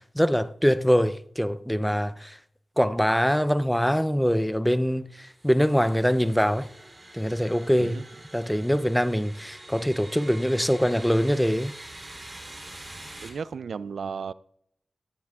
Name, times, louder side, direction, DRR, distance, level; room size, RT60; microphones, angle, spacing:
voice 1, 0.2-2.3 2.8-6.7 7.1-8.0 8.3-11.7, equal, ahead, 0.5 m, -23 dB
sound 1, 5.3-13.3, right 1 dB, 25° right, 3.3 m, -45 dB
voice 2, 13.2-14.3, right 6 dB, 80° right, 0.3 m, -34 dB
17.5 x 13.0 x 2.4 m
wide cardioid pair, 85°, 0 cm